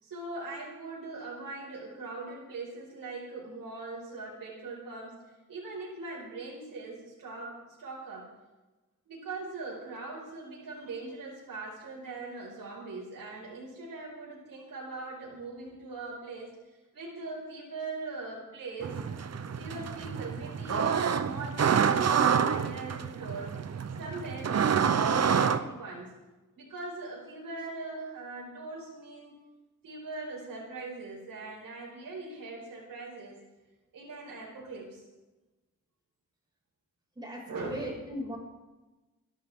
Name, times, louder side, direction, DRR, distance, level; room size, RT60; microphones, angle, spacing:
voice 1, 0.0-5.2 5.5-8.3 9.1-16.5 16.9-19.1 19.6-23.6 24.0-26.1 26.5-29.3 29.8-33.4 33.9-35.0 37.5-38.0, right 3 dB, 90° right, -4 dB, 5.2 m, -41 dB
sound 1, 18.8-25.6, right 7 dB, 50° right, 0.8 m, -27 dB
voice 2, 37.2-38.4, equal, 15° right, -3 dB, 6.0 m, -38 dB
26.0 x 11.5 x 3.8 m, 1.1 s
wide cardioid pair, 150°, 33 cm